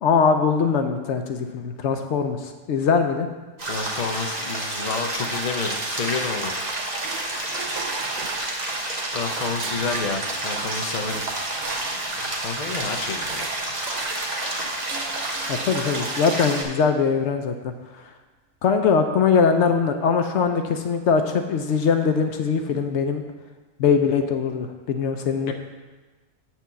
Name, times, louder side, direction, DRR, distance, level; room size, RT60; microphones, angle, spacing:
voice 1, 0.0-3.3 15.5-17.7 18.6-23.2 23.8-25.5, left 5 dB, 70° left, 6 dB, 0.9 m, -21 dB
voice 2, 3.6-6.6 9.1-11.2 12.4-13.7 25.5-25.6, left 4 dB, 40° left, 4 dB, 0.7 m, -30 dB
sound 1, 3.6-16.6, right 1 dB, 35° right, 1.2 m, -29 dB
sound 2, 5.3-6.7 7.0-16.4, right 6 dB, 80° right, 1.0 m, -39 dB
7.4 x 4.6 x 6.8 m, 1.3 s
omnidirectional pair, 1.3 m